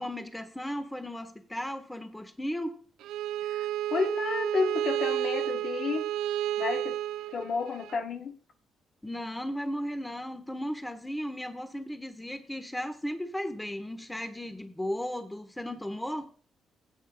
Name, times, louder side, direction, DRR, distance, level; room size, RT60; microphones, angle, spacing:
voice 1, 0.0-2.7 9.0-16.3, equal, 10° left, 1.4 m, -35 dB
Bowed string instrument, 3.0-8.0, right 13 dB, 90° right, 0.4 m, -31 dB
voice 2, 3.4-6.1 6.6-7.0 7.3-8.4, left 4 dB, 60° left, 1.2 m, -31 dB
16.0 x 8.7 x 2.4 m
cardioid pair, 90°, 0 cm